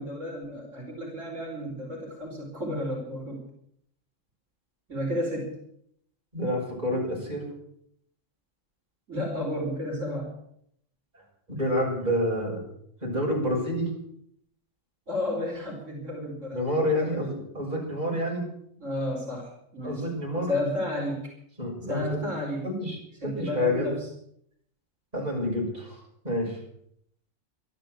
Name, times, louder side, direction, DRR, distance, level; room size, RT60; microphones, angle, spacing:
voice 1, 0.0-3.4 4.9-5.6 9.1-10.4 15.1-17.4 18.8-20.1 20.5-21.3 21.9-22.7 23.2-24.1, left 1 dB, 70° right, -2 dB, 4.4 m, -32 dB
voice 2, 6.3-7.4 11.5-12.6 13.0-13.9 16.5-18.4 19.8-20.5 21.6-22.2 22.6-23.0 23.2-23.9 25.1-26.6, left 1 dB, 30° right, -3 dB, 6.4 m, -28 dB
13.0 x 11.5 x 7.7 m, 0.70 s
omnidirectional pair, 1.3 m